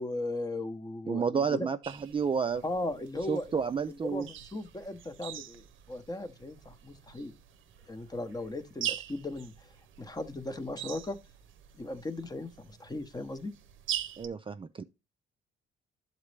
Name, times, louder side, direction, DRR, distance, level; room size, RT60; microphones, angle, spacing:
voice 1, 0.0-1.7 2.6-3.6 3.9-7.3 7.9-9.7 10.0-11.2 11.8-13.5, left 2 dB, 20° left, 0.8 m, -37 dB
voice 2, 1.1-1.8 2.1-2.6 3.3-4.3 14.2-14.8, right 6 dB, 25° right, 0.4 m, -30 dB
sound 1, 1.8-14.3, right 11 dB, 80° right, 0.7 m, -43 dB
11.5 x 4.0 x 3.2 m
cardioid pair, 90°, 20 cm